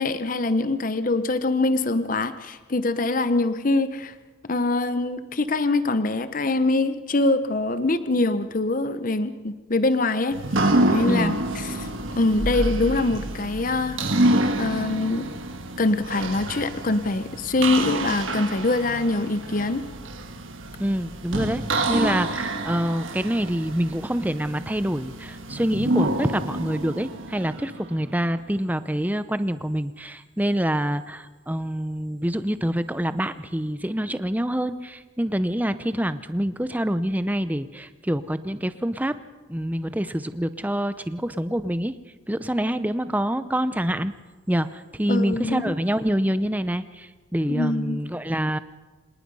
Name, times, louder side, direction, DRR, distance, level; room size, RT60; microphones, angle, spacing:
voice 1, 0.0-4.1 4.4-10.4 10.9-11.9 12.2-14.0 14.6-15.2 15.8-19.8 45.1-45.7 47.5-48.0, left 2 dB, 40° left, 12 dB, 0.7 m, -24 dB
sound 1, 10.3-28.1, right 1 dB, 70° right, 1.6 m, -28 dB
voice 2, 20.8-21.6 21.9-39.2 39.5-41.9 42.3-44.1 44.5-48.6, equal, 10° right, 12 dB, 0.6 m, -26 dB
26.0 x 19.0 x 5.5 m, 1.3 s
head